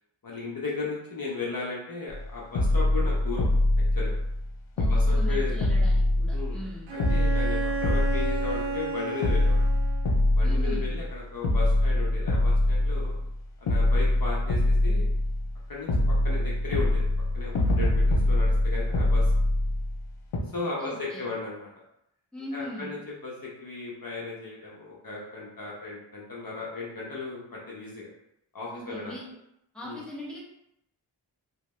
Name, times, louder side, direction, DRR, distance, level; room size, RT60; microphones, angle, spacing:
voice 1, 0.2-3.5 3.9-4.1 4.9-5.6 6.3-6.6 6.9-9.7 10.4-13.2 13.6-15.1 15.7-17.0 17.3-19.3 20.5-21.7 22.5-28.1 28.5-29.2 29.8-30.0, left 4 dB, 45° left, -4 dB, 0.8 m, -36 dB
sound 1, 2.1-2.2 2.5-4.5 4.8-6.7 7.0-8.9 9.2-11.1 11.4-13.3 13.7-15.6 15.9-20.0 20.3-20.4, left 1 dB, 85° left, 0.7 m, -24 dB
voice 2, 4.8-6.9 10.4-10.8 20.8-21.3 22.3-22.9 28.7-29.3 29.7-30.4, equal, ahead, -6 dB, 1.1 m, -39 dB
Bowed string instrument, 6.9-10.4, right 4 dB, 75° right, 0.6 m, -33 dB
3.2 x 2.2 x 3.0 m, 0.79 s
wide cardioid pair, 45°, 47 cm